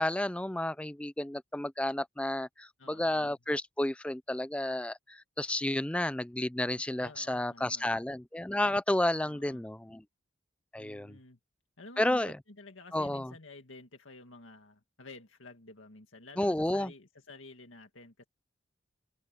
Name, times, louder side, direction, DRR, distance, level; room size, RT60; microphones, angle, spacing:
voice 1, 0.0-10.0 10.7-11.2 12.0-12.3 12.9-13.3 16.4-16.9, left 1 dB, 5° left, 0.3 m, -31 dB
voice 2, 2.8-3.3 7.0-7.9 9.2-9.6 10.8-11.4 11.8-18.2, left 2 dB, 85° left, 2.1 m, -51 dB
open air
head